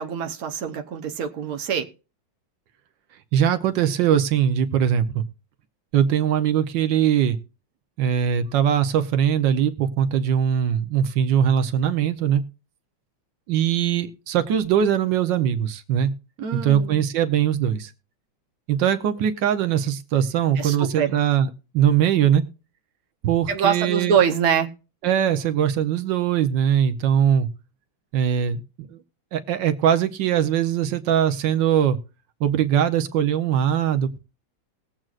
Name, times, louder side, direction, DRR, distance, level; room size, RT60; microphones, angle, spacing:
voice 1, 0.0-1.9 16.4-17.0 20.6-21.1 23.5-24.7, right 7 dB, 55° right, 1.3 m, -24 dB
voice 2, 3.3-5.2 5.9-7.4 8.0-12.4 13.5-16.1 16.5-17.9 18.7-21.5 21.7-22.4 23.2-24.2 25.0-27.5 28.1-28.6 28.9-29.0 29.3-32.0 32.4-34.2, right 9 dB, 85° right, 1.5 m, -21 dB
20.5 x 7.6 x 2.4 m
omnidirectional pair, 2.0 m